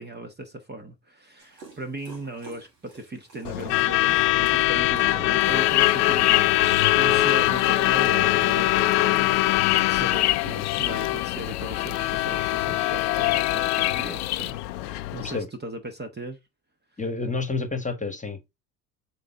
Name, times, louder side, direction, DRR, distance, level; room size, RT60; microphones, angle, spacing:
voice 1, 0.0-2.7 2.9-16.4, right 2 dB, 20° right, 1.3 m, -38 dB
Dog, 1.4-12.9, right 4 dB, 90° right, 2.3 m, -51 dB
Truck / Alarm, 3.4-15.4, left 17 dB, 80° left, 0.6 m, -23 dB
sound 1, 5.4-14.5, left 16 dB, 40° left, 0.4 m, -30 dB
voice 2, 17.0-18.6, left 3 dB, 15° left, 1.6 m, -29 dB
6.6 x 4.1 x 3.7 m
hypercardioid pair, 65°, 47 cm